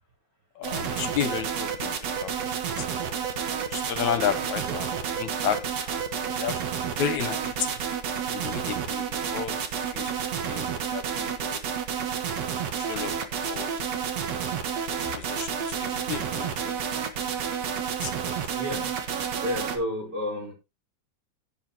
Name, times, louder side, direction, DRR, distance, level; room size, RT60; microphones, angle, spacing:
voice 1, 0.6-2.3 2.8-3.0 3.7-6.1 6.4-7.7 8.3-10.2 10.5-11.6 12.8-13.1 13.4-13.8 14.7-16.8 18.0-18.3, left 9 dB, 75° left, 2.5 m, -33 dB
sound 1, 0.6-19.8, right 7 dB, 60° right, 2.6 m, -30 dB
voice 2, 18.5-19.0 19.4-20.5, left 1 dB, 35° right, 5.1 m, -31 dB
16.5 x 7.3 x 3.1 m
omnidirectional pair, 3.4 m